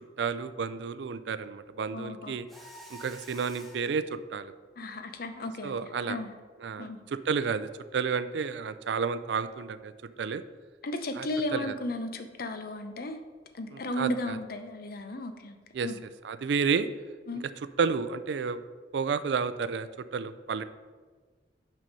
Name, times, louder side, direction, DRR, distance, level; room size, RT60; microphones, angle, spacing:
voice 1, 0.2-2.5 2.9-4.5 5.6-6.2 6.6-9.9 10.2-10.4 11.2-11.3 11.5-11.7 13.7-14.4 15.7-15.9 16.2-16.9 17.8-18.6 18.9-19.9 20.1-20.6, right 5 dB, 70° right, 13 dB, 0.4 m, -31 dB
voice 2, 1.9-2.4 4.8-6.3 6.8-7.0 10.8-13.2 13.5-15.6 15.8-16.0 17.3-17.4, left 1 dB, 55° left, 8 dB, 0.7 m, -35 dB
Mechanisms, 2.5-4.0, equal, ahead, 1.0 m, -49 dB
6.0 x 5.6 x 5.4 m, 1.5 s
head